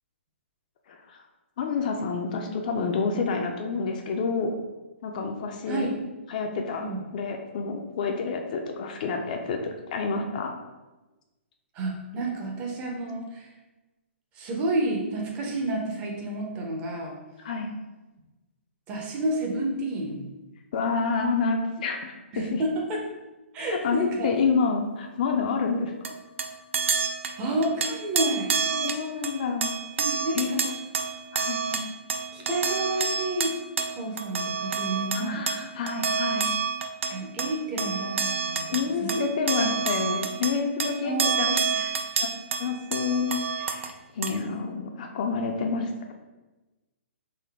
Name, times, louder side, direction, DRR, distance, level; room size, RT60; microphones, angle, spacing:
voice 1, 0.9-1.2 1.6-4.5 5.0-5.9 6.3-10.5 17.4-17.7 20.7-22.6 23.7-25.9 28.7-29.7 30.3-30.6 31.3-31.6 35.1-36.5 38.0-38.1 38.7-41.9 42.2-42.3 42.6-46.1, left 5 dB, 40° left, 3 dB, 0.4 m, -28 dB
voice 2, 11.7-13.5 14.3-17.2 18.9-20.2 22.3-23.0 23.5-24.3 27.4-28.5 30.0-30.8 31.7-31.9 32.3-33.6 33.9-35.4 37.1-38.6 39.0-39.7 41.0-41.8, right 2 dB, 20° right, 0 dB, 0.5 m, -30 dB
sound 1, 26.0-43.9 44.2-44.4, right 6 dB, 75° right, 0.4 m, -29 dB
3.7 x 2.6 x 3.3 m, 1.1 s
hypercardioid pair, 165°, 7 cm